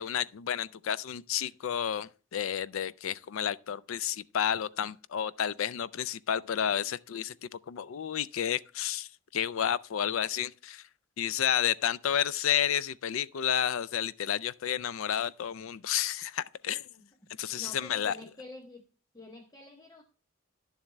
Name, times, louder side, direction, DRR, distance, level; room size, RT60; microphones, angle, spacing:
voice 1, 0.0-10.8 11.2-16.9 17.4-18.2, left 9 dB, 75° left, 0.4 m, -31 dB
voice 2, 17.6-18.8 19.1-20.0, left 2 dB, 20° left, 0.7 m, -47 dB
11.0 x 7.2 x 3.2 m
head